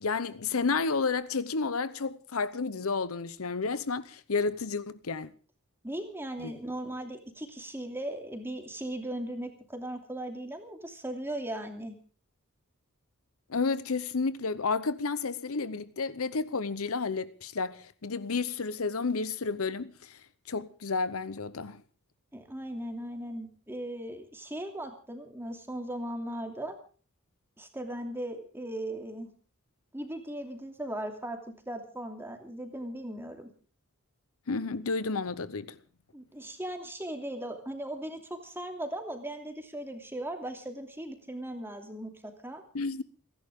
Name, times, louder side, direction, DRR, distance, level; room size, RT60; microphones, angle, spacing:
voice 1, 0.0-5.3 6.4-6.5 13.5-20.2 20.5-21.8 34.5-35.8 42.7-43.0, left 4 dB, 75° left, 0.8 m, -31 dB
voice 2, 5.8-11.9 22.3-26.7 27.6-29.3 29.9-31.4 31.7-33.5 36.1-42.6, right 1 dB, 10° right, 2.8 m, -38 dB
29.5 x 11.0 x 3.7 m
head